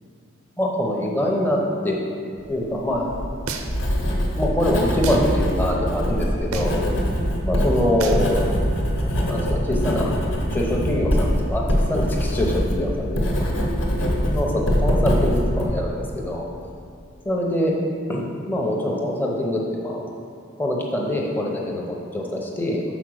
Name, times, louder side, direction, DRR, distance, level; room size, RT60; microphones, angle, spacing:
voice 1, 0.6-2.0 2.5-3.1 4.4-6.8 7.4-8.6 9.2-10.1 10.5-13.5 14.3-16.5 17.2-17.7 18.1-20.0 20.6-22.8, left 1 dB, 10° left, -2 dB, 0.7 m, -24 dB
Writing, 2.9-15.6, equal, 60° left, 1.1 m, -23 dB
sound 1, 3.5-3.9 5.0-5.3 6.5-6.9 8.0-8.3, right 5 dB, 85° right, 0.6 m, -31 dB
5.9 x 4.4 x 6.2 m, 2.4 s
head